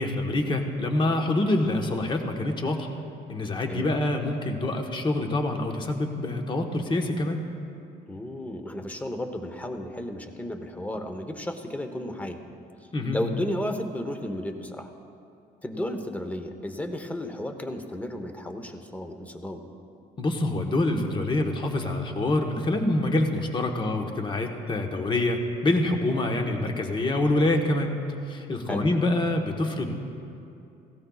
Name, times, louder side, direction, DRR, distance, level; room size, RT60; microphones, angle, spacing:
voice 1, 0.0-2.9 3.3-7.4 12.9-13.2 20.2-27.9 28.3-30.0, left 2 dB, 30° left, 3 dB, 1.3 m, -26 dB
voice 2, 8.1-12.4 13.1-14.9 15.6-19.6 28.7-28.9, left 1 dB, 10° left, 6 dB, 1.0 m, -33 dB
17.0 x 16.0 x 2.4 m, 2.6 s
cardioid pair, 110°, 17 cm